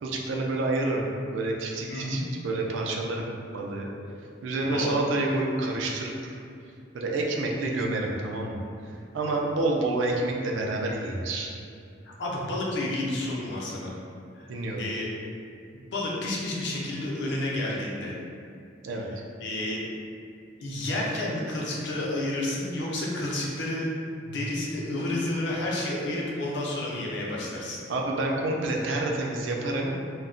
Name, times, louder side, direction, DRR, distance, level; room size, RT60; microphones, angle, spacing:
voice 1, 0.0-3.2 3.5-3.9 4.4-6.3 6.9-8.6 9.1-11.5 14.5-14.8 18.8-19.1 27.9-29.9, right 2 dB, 80° right, -1 dB, 0.4 m, -28 dB
voice 2, 1.9-2.2 4.7-4.9 12.2-13.9 14.3-14.5 14.8-15.1 15.9-18.2 19.4-19.8 20.6-23.9 24.2-27.8, left 1 dB, 65° left, -4 dB, 0.5 m, -30 dB
2.2 x 2.1 x 3.7 m, 2.5 s
head